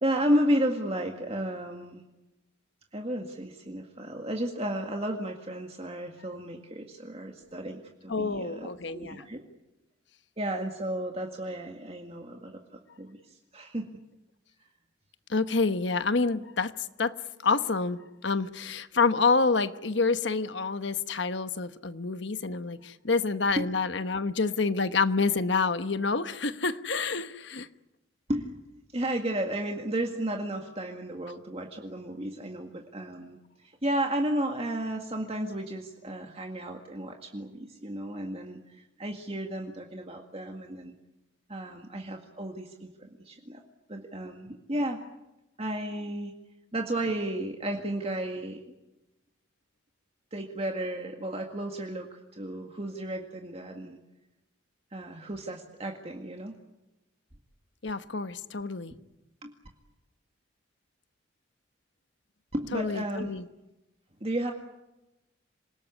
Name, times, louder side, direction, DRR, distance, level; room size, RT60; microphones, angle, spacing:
voice 1, 0.0-2.0 2.9-9.4 10.4-13.9 28.3-28.5 28.9-33.4 33.6-40.9 41.5-43.6 43.9-45.0 45.6-46.3 46.7-48.6 50.3-54.0 54.9-56.6 59.4-59.5 62.5-63.3 64.2-64.5, right 1 dB, 30° right, 3 dB, 1.9 m, -33 dB
voice 2, 8.1-9.2 15.3-16.7 17.0-17.1 17.4-27.7 57.8-58.9 62.7-63.4, left 4 dB, 65° left, 11 dB, 1.1 m, -28 dB
27.0 x 19.0 x 9.7 m, 0.98 s
head